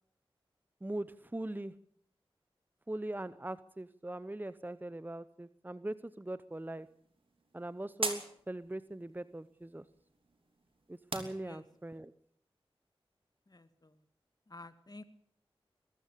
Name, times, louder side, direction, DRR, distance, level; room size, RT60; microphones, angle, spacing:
voice 1, 0.8-1.7 2.9-6.9 7.5-9.8 10.9-12.1, right 1 dB, 20° right, 15 dB, 0.8 m, -41 dB
sound 1, 6.5-12.0, right 3 dB, 65° right, 3.1 m, -44 dB
voice 2, 13.5-14.0 14.5-15.0, left 2 dB, 40° left, 11 dB, 2.0 m, -51 dB
21.5 x 14.5 x 8.4 m, 0.65 s
cardioid pair, 40°, 10 cm